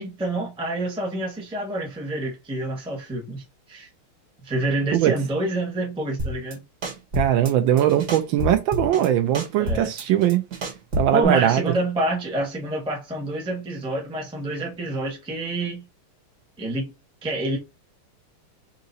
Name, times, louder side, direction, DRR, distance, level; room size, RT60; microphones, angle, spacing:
voice 1, 0.0-3.9 4.4-6.6 9.6-9.9 11.1-15.8 16.6-16.9 17.2-17.6, right 2 dB, 5° right, 0.5 m, -27 dB
sound 1, 6.2-6.5 6.8-7.5 7.8-9.1 9.3-11.2, left 1 dB, 50° right, 1.7 m, -29 dB
voice 2, 7.2-10.4 10.9-11.7, right 11 dB, 75° right, 1.3 m, -20 dB
3.7 x 2.9 x 3.9 m
omnidirectional pair, 2.4 m